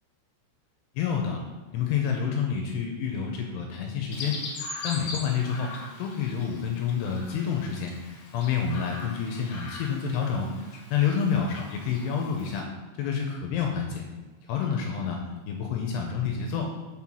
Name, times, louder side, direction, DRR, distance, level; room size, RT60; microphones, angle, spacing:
voice 1, 1.0-1.4 1.7-4.4 4.8-7.9 8.3-10.5 10.9-12.7 13.0-14.1 14.5-15.2 15.5-16.7, left 7 dB, 80° left, 1 dB, 2.6 m, -28 dB
Chirp tweet, 4.1-12.6, left 3 dB, 60° left, 2.4 m, -41 dB
6.4 x 5.7 x 6.1 m, 1.3 s
omnidirectional pair, 5.3 m